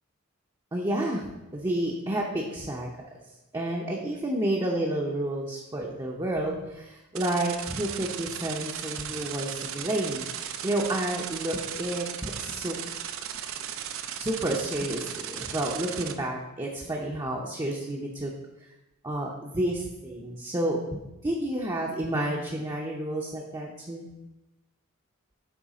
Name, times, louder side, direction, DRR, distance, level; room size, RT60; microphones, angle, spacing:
voice 1, 0.7-1.3 1.5-2.9 3.5-10.3 10.6-12.7 14.2-18.3 19.0-24.1, right 1 dB, 20° right, -2 dB, 0.6 m, -30 dB
sound 1, 7.1-16.1, right 9 dB, 70° right, 0.5 m, -36 dB
8.2 x 3.3 x 4.9 m, 0.99 s
head